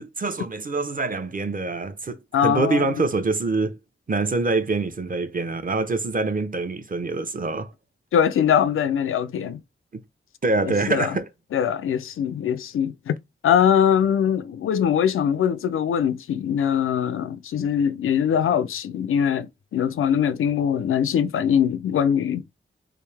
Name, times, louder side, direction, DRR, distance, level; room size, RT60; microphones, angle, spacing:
voice 1, 0.0-3.8 4.1-7.7 9.9-10.0 10.4-11.3, right 3 dB, 40° right, 0.9 m, -25 dB
voice 2, 2.3-3.0 8.1-9.6 10.6-11.2 11.5-13.1 13.4-22.4, left 8 dB, 85° left, 0.4 m, -22 dB
3.5 x 2.6 x 3.4 m
cardioid pair, 50°, 21 cm